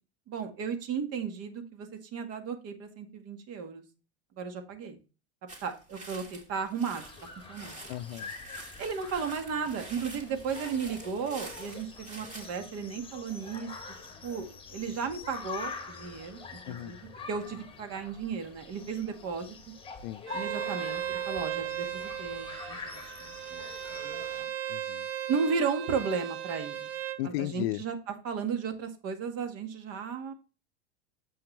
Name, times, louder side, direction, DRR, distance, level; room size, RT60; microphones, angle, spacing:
voice 1, 0.3-3.8 4.4-5.0 5.6-7.1 7.5-7.8 8.8-13.7 14.2-16.4 16.7-19.6 20.3-23.7 24.0-24.5 25.3-26.9 27.2-30.3, right 6 dB, 45° right, 1.8 m, -35 dB
sound 1, 5.5-12.5, right 2 dB, 20° right, 2.8 m, -48 dB
sound 2, 6.9-24.4, left 4 dB, 15° left, 1.5 m, -45 dB
voice 2, 7.9-8.3 16.7-17.0 20.0-20.2 24.7-25.1 27.2-27.8, left 15 dB, 55° left, 0.6 m, -34 dB
Bowed string instrument, 20.3-27.2, right 10 dB, 65° right, 1.3 m, -36 dB
7.3 x 5.8 x 3.3 m
hypercardioid pair, 105°, 34 cm